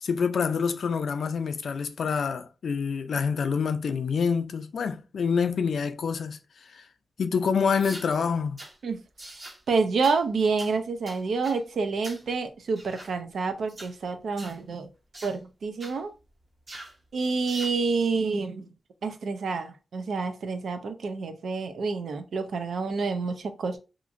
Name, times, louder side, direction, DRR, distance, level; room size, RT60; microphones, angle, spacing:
voice 1, 0.0-6.4 6.7-6.8 7.2-8.6, left 6 dB, 75° left, 0.3 m, -27 dB
sound 1, 7.8-8.1 8.6-8.7 9.2-9.6 10.0-10.2 10.6-10.7 11.1-11.6 12.0-12.3 12.8-13.1 13.7-13.9 14.4-14.6 15.1-15.4 15.8-16.0 16.7-17.0 17.5-17.8, right 1 dB, 35° right, 0.7 m, -43 dB
voice 2, 9.7-14.9 15.2-16.1 17.1-18.7 19.0-23.8, right 4 dB, 90° right, 0.4 m, -28 dB
2.8 x 2.4 x 2.5 m
wide cardioid pair, 165°, 0 cm